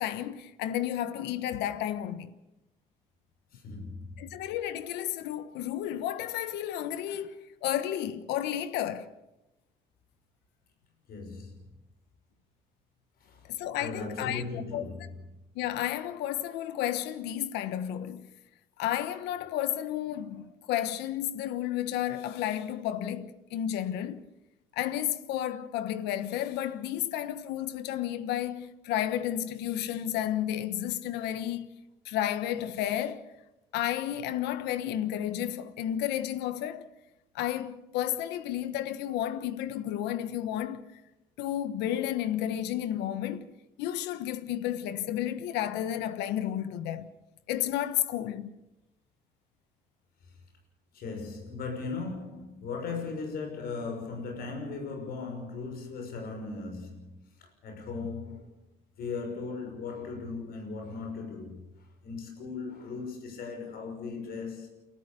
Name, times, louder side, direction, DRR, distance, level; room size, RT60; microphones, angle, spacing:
voice 1, 0.0-2.3 4.2-9.1 13.5-14.4 14.7-14.9 15.5-18.3 18.8-24.2 24.7-31.7 32.0-33.3 33.7-36.9 37.3-41.0 41.4-43.5 43.8-47.1 47.5-48.5, left 11 dB, 85° left, 1.3 m, -32 dB
voice 2, 3.5-4.3 11.1-11.8 13.2-13.5 13.8-15.3 50.2-50.4 50.9-58.5 59.0-64.7, left 4 dB, 65° left, 6.0 m, -38 dB
30.0 x 13.5 x 6.9 m
cardioid pair, 110°, 17 cm